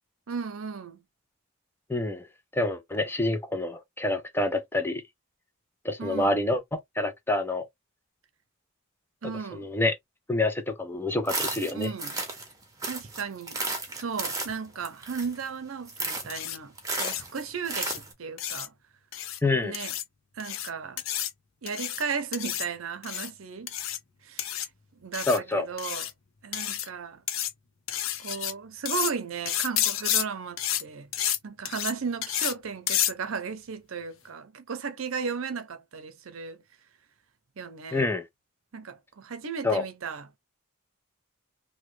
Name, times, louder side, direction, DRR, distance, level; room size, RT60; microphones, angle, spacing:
voice 1, 0.3-1.0 6.0-6.4 9.2-9.7 11.7-12.1 12.9-13.6 13.9-16.7 17.0-18.7 19.6-19.9 20.3-21.0 21.6-23.7 24.2-24.6 25.0-26.1 26.4-27.2 28.2-31.1 31.4-36.6 37.6-38.1 38.7-40.4, right 5 dB, 70° right, 0.6 m, -35 dB
voice 2, 1.9-2.3 2.5-5.0 5.8-7.7 9.5-10.0 10.3-11.9 19.4-19.7 25.3-25.7 37.9-38.2 39.6-39.8, left 2 dB, 10° left, 0.4 m, -27 dB
sound 1, 11.3-12.5 12.8-15.5 15.9-16.4 16.8-18.1, right 3 dB, 15° right, 0.8 m, -33 dB
sound 2, 16.3-16.6 16.9-17.2 17.8-18.0 18.4-18.7 19.1-19.4 19.7-20.0 20.4-20.7 21.0-21.3 21.7-22.0 22.3-22.7 23.0-23.3 23.7-24.0 24.4-24.7 25.1-25.4 25.8-26.1 26.5-26.9 27.3-27.5 27.9-28.5 28.9-29.1 29.5-30.2 30.6-30.8 31.1-31.4 31.6-31.9 32.2-32.5 32.9-33.1, left 11 dB, 65° left, 0.6 m, -30 dB
3.0 x 2.2 x 3.1 m
head